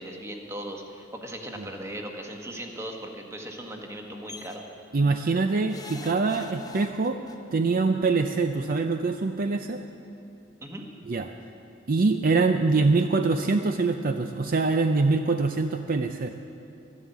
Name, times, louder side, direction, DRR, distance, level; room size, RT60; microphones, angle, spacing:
voice 1, 0.0-4.6 10.6-10.9, right 1 dB, 15° right, 2 dB, 1.4 m, -38 dB
sound 1, 4.3-4.6 5.7-7.4 8.6-8.7 8.9-9.0, left 3 dB, 20° left, 0.9 m, -43 dB
voice 2, 4.9-7.2 7.5-9.8 11.1-11.3 11.9-16.3, right 3 dB, 45° right, 7 dB, 0.5 m, -24 dB
13.0 x 11.0 x 8.3 m, 2.8 s
head